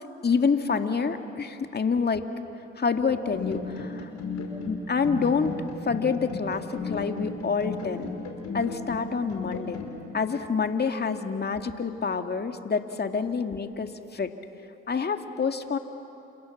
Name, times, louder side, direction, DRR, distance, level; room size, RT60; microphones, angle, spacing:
voice 1, 0.2-2.2 2.8-4.1 4.7-5.5 5.9-8.1 8.5-9.8 10.1-14.3 14.9-15.8, left 5 dB, 35° left, 6 dB, 2.1 m, -27 dB
sound 1, 3.1-9.9, left 4 dB, 65° left, 5.2 m, -34 dB
30.0 x 27.5 x 7.2 m, 2.9 s
hypercardioid pair, 55°, 29 cm